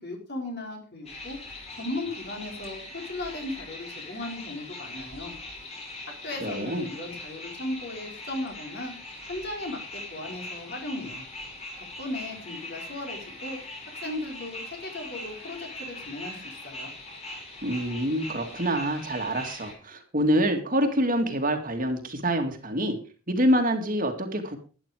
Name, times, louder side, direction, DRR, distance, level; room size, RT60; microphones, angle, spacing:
voice 1, 0.0-1.4 1.7-5.3 6.1-8.9 9.3-11.2 11.8-13.6 14.0-16.9, left 2 dB, 50° left, 2 dB, 4.3 m, -36 dB
sound 1, 1.1-19.7, left 2 dB, 30° left, 4.1 m, -41 dB
voice 2, 6.4-6.9 17.6-23.0 23.3-24.6, equal, 40° right, 5 dB, 2.2 m, -26 dB
12.0 x 11.0 x 4.9 m, 0.36 s
head